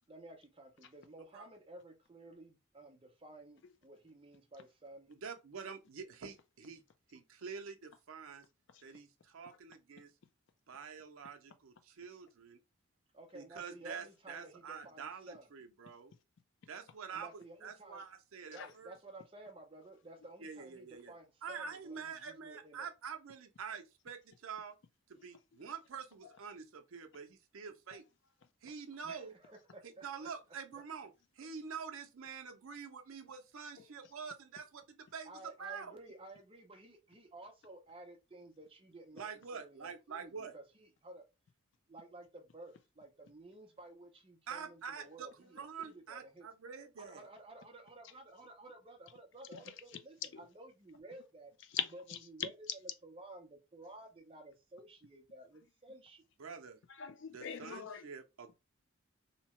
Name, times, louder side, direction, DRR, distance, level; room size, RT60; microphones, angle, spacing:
voice 1, 0.1-5.1 13.1-15.5 17.1-18.0 18.5-22.9 29.0-30.3 35.3-39.3 39.5-41.3 41.9-46.5 47.0-50.1 50.6-51.5 52.3-52.5 53.0-56.3, right 2 dB, 25° right, 0.5 m, -54 dB
voice 2, 5.1-6.8 7.1-8.4 8.8-10.1 10.7-12.6 13.3-16.1 16.7-17.3 17.6-19.0 20.4-21.1 21.4-24.8 25.1-28.0 28.6-29.3 29.8-36.0 39.1-40.5 44.5-47.3 56.4-56.8 57.3-58.5, right 6 dB, 70° right, 0.5 m, -47 dB
voice 3, 49.5-50.0 50.3-50.4 51.6-52.7 56.9-58.1, left 9 dB, 55° left, 0.4 m, -43 dB
2.8 x 2.1 x 2.9 m
head